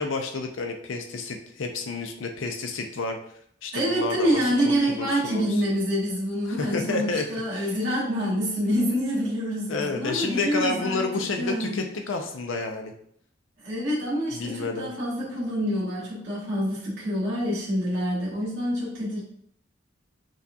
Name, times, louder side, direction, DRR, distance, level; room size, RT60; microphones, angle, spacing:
voice 1, 0.0-3.2 3.6-4.4 4.7-5.5 6.6-7.3 7.5-7.8 9.7-12.9 14.3-14.9, left 3 dB, 85° left, 4 dB, 0.5 m, -30 dB
voice 2, 3.7-11.0 11.4-11.8 13.6-19.2, equal, 70° right, -8 dB, 1.6 m, -26 dB
6.1 x 2.3 x 2.8 m, 0.68 s
head